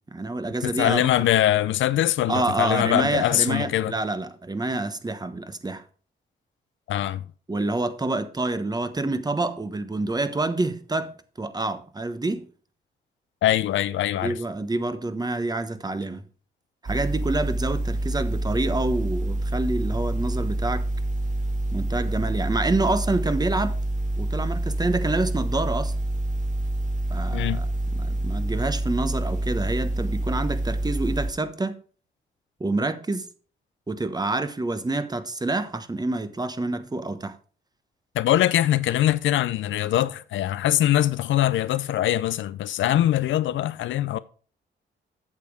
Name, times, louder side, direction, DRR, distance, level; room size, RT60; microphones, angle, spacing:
voice 1, 0.1-1.1 2.3-5.8 7.5-12.5 14.2-16.2 16.8-20.9 21.7-23.8 24.2-25.9 27.1-27.7 27.9-31.8 32.6-33.3 33.9-37.3, right 2 dB, 20° right, 1.0 m, -27 dB
voice 2, 0.6-3.9 6.9-7.2 13.4-14.4 27.3-27.6 38.1-44.2, left 13 dB, 75° left, 0.5 m, -22 dB
sound 1, 16.9-31.3, right 1 dB, 40° right, 2.0 m, -27 dB
8.4 x 7.0 x 4.8 m
cardioid pair, 70°, 20 cm